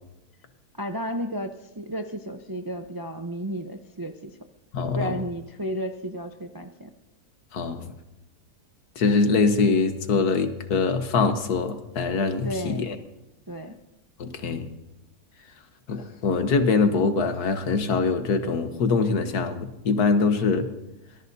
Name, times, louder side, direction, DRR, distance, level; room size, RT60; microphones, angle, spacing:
voice 1, 0.8-4.4 4.9-6.9 12.4-12.9 13.5-13.7, equal, 30° right, 6 dB, 0.4 m, -33 dB
voice 2, 4.7-5.1 7.5-7.9 9.0-13.0 14.2-14.7 15.9-20.7, left 4 dB, 80° left, 8 dB, 1.7 m, -23 dB
25.0 x 18.0 x 2.7 m, 0.93 s
omnidirectional pair, 1.6 m